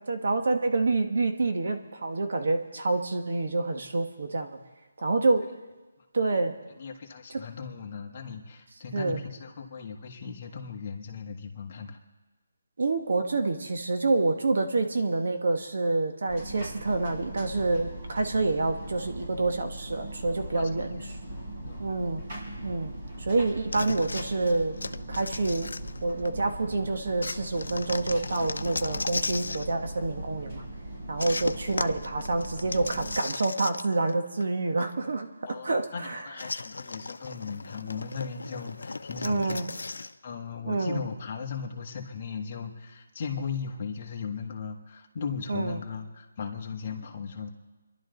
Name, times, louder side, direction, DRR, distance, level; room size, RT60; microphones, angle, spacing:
voice 1, 0.1-4.5 5.0-5.5 6.1-6.5 7.3-7.4 8.9-9.2 12.8-21.1 21.8-22.2 22.6-22.9 23.2-24.7 25.1-25.7 26.0-30.6 31.1-36.2 39.2-39.7 40.7-41.0 45.5-45.8, right 3 dB, 60° right, 5 dB, 1.7 m, -27 dB
voice 2, 6.8-12.0 20.5-21.1 21.7-21.9 35.5-47.5, left 6 dB, 30° left, 1 dB, 1.5 m, -37 dB
sound 1, 16.3-33.2, right 1 dB, 40° right, 5.3 m, -40 dB
sound 2, 23.7-26.4 27.2-29.7 31.2-34.1 34.4-34.5 36.4-40.1, left 3 dB, 85° left, 0.7 m, -36 dB
29.0 x 11.5 x 4.0 m, 1.2 s
hypercardioid pair, 170°, 0 cm